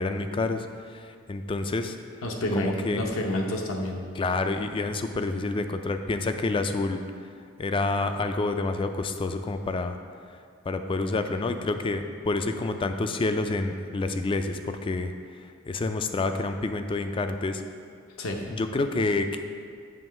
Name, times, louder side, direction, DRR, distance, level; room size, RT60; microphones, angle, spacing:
voice 1, 0.0-2.0 2.5-3.0 4.1-7.0 7.6-10.0 10.7-15.1 15.7-17.6 18.5-19.4, left 3 dB, 25° left, 7 dB, 0.3 m, -28 dB
voice 2, 2.2-4.0 18.2-18.4, left 1 dB, 75° left, 1 dB, 0.8 m, -29 dB
7.2 x 3.1 x 5.8 m, 2.1 s
head